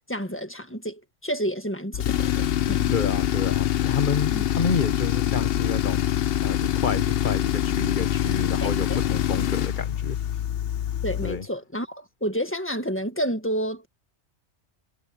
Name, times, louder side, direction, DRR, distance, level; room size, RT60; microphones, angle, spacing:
voice 1, 0.1-2.9 4.3-4.5 8.6-9.0 11.0-13.9, equal, 10° left, 1.6 m, -30 dB
Tools, 1.9-11.4, left 11 dB, 60° left, 0.8 m, -25 dB
voice 2, 2.9-6.1 6.4-10.2 11.2-11.5, left 5 dB, 45° left, 1.2 m, -29 dB
omnidirectional pair, 1.2 m